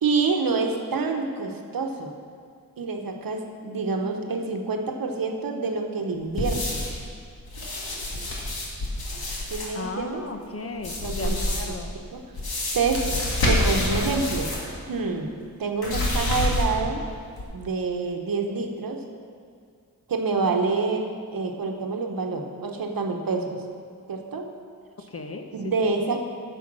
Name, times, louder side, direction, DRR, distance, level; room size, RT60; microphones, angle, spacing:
voice 1, 0.0-2.1 2.8-6.8 9.5-10.3 11.0-12.2 12.7-13.2 13.4-14.5 14.9-15.3 15.6-17.0 17.5-19.0 20.1-23.6 24.1-24.5 25.5-26.2, right 4 dB, 70° right, 3 dB, 1.1 m, -27 dB
sound 1, 6.4-7.0 7.5-9.7 10.8-11.8 12.3-14.7 15.0-15.1 15.8-16.9 17.3-17.4, left 1 dB, 85° left, 2.1 m, -27 dB
voice 2, 9.7-11.9 25.1-25.7, left 3 dB, 40° left, 5 dB, 0.9 m, -35 dB
10.0 x 7.0 x 6.2 m, 2.2 s
wide cardioid pair, 130°, 36 cm